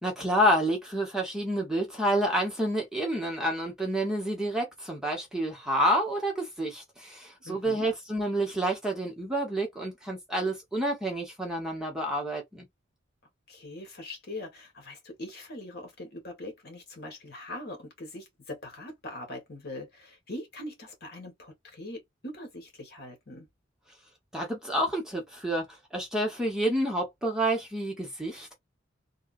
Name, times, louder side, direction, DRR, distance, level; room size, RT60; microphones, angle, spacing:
voice 1, 0.0-12.7 24.3-28.5, right 1 dB, 5° right, 1.1 m, -29 dB
voice 2, 7.4-7.9 13.5-23.5, left 1 dB, 55° left, 1.5 m, -42 dB
3.6 x 2.3 x 2.5 m
head